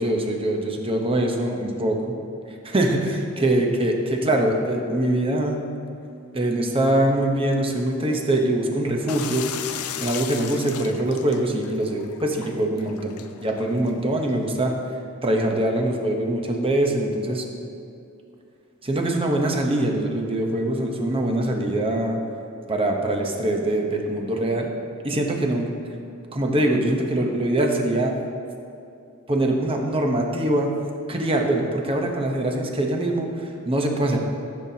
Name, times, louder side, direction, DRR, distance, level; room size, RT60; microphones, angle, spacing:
voice 1, 0.0-2.1 2.6-5.7 6.3-9.4 10.0-14.7 15.2-17.4 18.8-22.2 22.7-24.7 25.0-25.7 26.3-28.2 29.3-30.8 31.1-34.2, right 1 dB, 25° right, 2 dB, 0.9 m, -23 dB
sound 1, 9.1-14.5, left 9 dB, 85° left, 0.5 m, -36 dB
14.5 x 7.4 x 2.8 m, 2.6 s
head